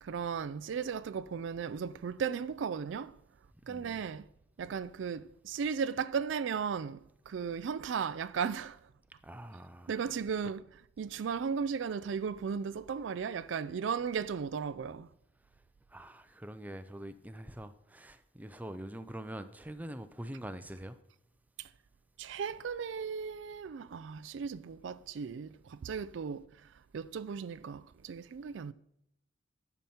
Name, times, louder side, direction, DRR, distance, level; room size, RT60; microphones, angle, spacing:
voice 1, 0.0-3.2 3.6-4.3 4.6-8.8 9.9-15.1 21.6-21.7 22.2-28.7, right 6 dB, 75° right, 0.4 m, -36 dB
voice 2, 3.7-4.0 9.2-9.9 15.9-21.0, right 1 dB, 10° right, 0.5 m, -44 dB
10.5 x 7.0 x 4.3 m
head